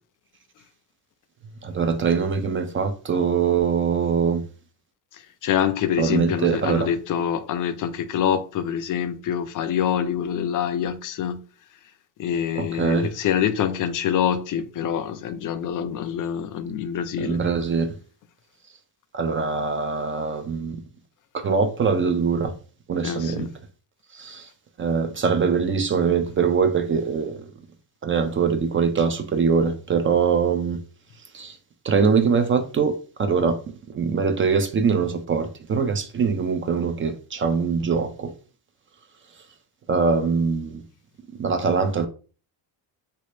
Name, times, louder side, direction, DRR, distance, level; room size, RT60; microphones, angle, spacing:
voice 1, 1.6-4.4 6.0-6.9 12.6-13.1 17.2-17.9 19.1-20.8 21.3-22.5 22.9-23.5 24.1-24.5 24.8-27.5 28.0-30.8 31.3-31.6 31.8-33.6 33.9-38.3 39.9-40.8 41.3-42.1, right 5 dB, 30° right, 0.4 m, -23 dB
voice 2, 5.1-11.4 12.2-17.4 23.0-23.5, left 9 dB, 50° left, 0.5 m, -25 dB
3.2 x 2.7 x 3.2 m
cardioid pair, 135°, 41 cm